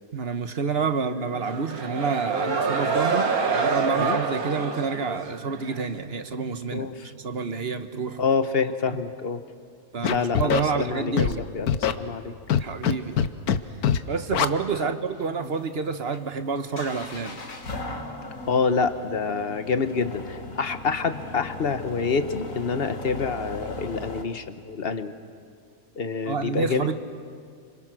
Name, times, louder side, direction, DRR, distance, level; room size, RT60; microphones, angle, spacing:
voice 1, 0.1-8.3 8.8-9.0 9.9-11.5 12.6-13.2 14.1-17.4 26.3-27.0, right 5 dB, 45° right, 9 dB, 1.2 m, -28 dB
sound 1, 1.4-5.9, right 5 dB, 70° right, 2.1 m, -26 dB
voice 2, 6.7-7.1 8.2-9.4 10.1-10.4 10.7-11.1 11.5-12.3 14.8-14.9 15.4-15.5 18.5-25.1 26.0-27.0, left 5 dB, 45° left, 10 dB, 1.2 m, -27 dB
Scratching (performance technique), 10.0-10.6 11.2-11.3 11.7-11.9 12.5-12.9 13.2-13.6 13.8-14.0 14.3-14.5, left 9 dB, 80° left, 1.4 m, -21 dB
sound 2, 15.1-24.2, left 2 dB, 60° left, 2.2 m, -38 dB
29.5 x 26.5 x 6.2 m, 2.1 s
omnidirectional pair, 1.6 m